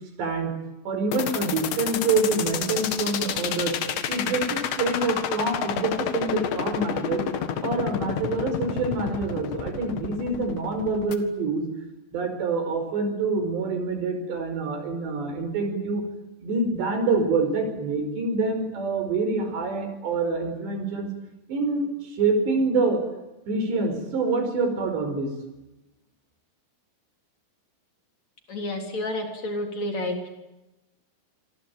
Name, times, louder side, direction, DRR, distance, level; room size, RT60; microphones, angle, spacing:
voice 1, 0.2-0.5 0.9-3.8 4.1-7.3 7.6-11.7 12.1-16.0 16.4-21.1 21.5-23.0 23.5-25.3, right 3 dB, 80° right, 7 dB, 7.2 m, -26 dB
sound 1, 1.1-11.1, left 9 dB, 85° left, 4.1 m, -30 dB
voice 2, 28.5-30.3, left 1 dB, 40° left, 4 dB, 4.5 m, -30 dB
27.5 x 23.0 x 9.3 m, 0.98 s
omnidirectional pair, 4.9 m